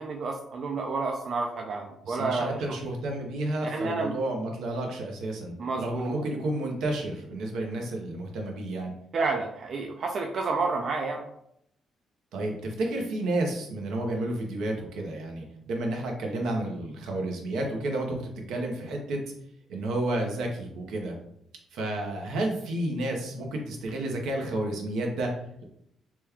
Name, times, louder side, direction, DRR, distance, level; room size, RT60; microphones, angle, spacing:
voice 1, 0.0-2.6 3.7-4.1 5.6-6.2 9.1-11.2, right 3 dB, 55° right, 2 dB, 0.4 m, -30 dB
voice 2, 2.0-8.9 12.3-19.2 19.7-21.1 21.7-25.3, right 1 dB, 85° right, 1 dB, 0.7 m, -31 dB
2.9 x 2.3 x 3.4 m, 0.73 s
cardioid pair, 90°, 0 cm